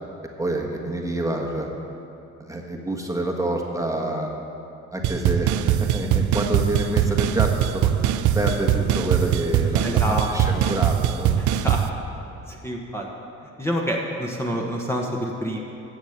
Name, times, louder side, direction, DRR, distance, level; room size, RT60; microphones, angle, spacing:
voice 1, 0.4-1.7 2.4-4.3 4.9-7.9 8.3-11.4, right 1 dB, 10° right, 0 dB, 1.3 m, -27 dB
sound 1, 5.0-11.9, right 10 dB, 80° right, 0.6 m, -21 dB
voice 2, 9.8-10.3 11.4-11.8 12.5-13.1 13.6-15.6, equal, 10° left, -1 dB, 1.2 m, -27 dB
10.5 x 7.1 x 8.0 m, 2.7 s
cardioid pair, 90°, 30 cm